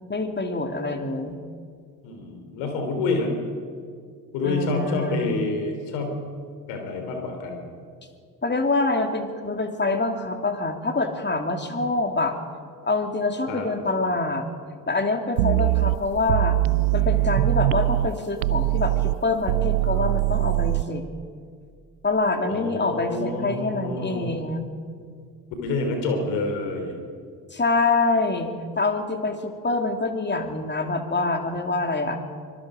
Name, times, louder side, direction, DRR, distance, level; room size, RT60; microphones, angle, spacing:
voice 1, 0.1-1.4 4.4-5.3 8.4-12.4 12.8-14.5 14.9-16.6 16.9-21.0 22.0-24.7 27.5-32.2, left 3 dB, 20° left, 5 dB, 2.8 m, -25 dB
voice 2, 2.0-3.3 4.3-6.2 6.7-7.6 13.5-13.7 22.5-24.3 25.6-27.0, left 3 dB, 70° left, 4 dB, 4.0 m, -27 dB
sound 1, 15.4-18.1 18.4-20.8, right 19 dB, 75° right, 0.5 m, -22 dB
24.5 x 22.0 x 5.2 m, 2.1 s
figure-of-eight pair, 50°, 48 cm